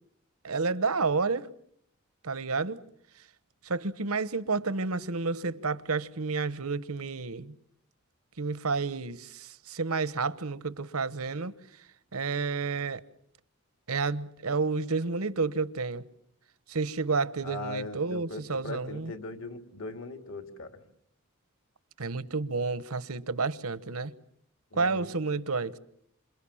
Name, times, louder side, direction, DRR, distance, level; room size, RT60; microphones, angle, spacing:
voice 1, 0.4-1.5 2.2-2.8 3.6-7.5 8.4-11.5 12.1-13.0 13.9-16.0 16.7-19.1 22.0-24.1 24.7-25.8, right 4 dB, 80° right, 1.1 m, -30 dB
voice 2, 17.4-20.8 24.7-25.1, left 2 dB, 60° left, 2.7 m, -39 dB
28.5 x 27.0 x 7.3 m
head